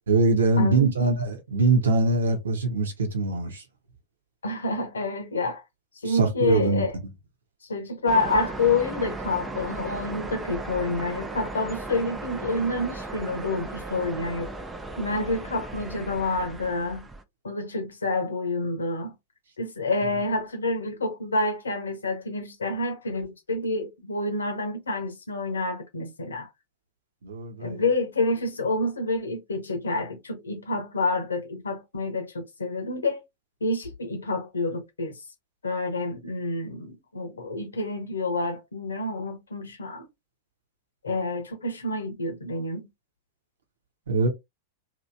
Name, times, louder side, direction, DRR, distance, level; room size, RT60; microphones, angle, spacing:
voice 1, 0.1-3.6 6.0-6.8 20.0-20.1 27.2-27.8 44.1-44.3, right 3 dB, 70° right, 1.1 m, -23 dB
voice 2, 0.6-0.9 4.4-5.6 6.0-6.9 7.7-14.5 15.0-17.1 17.4-19.1 19.6-26.5 27.6-33.2 33.6-35.2 35.6-40.1 41.0-42.9, left 2 dB, 75° left, 1.0 m, -28 dB
sound 1, 8.1-17.2, right 2 dB, 15° right, 0.6 m, -36 dB
3.0 x 3.0 x 2.7 m
figure-of-eight pair, 90°, 0 cm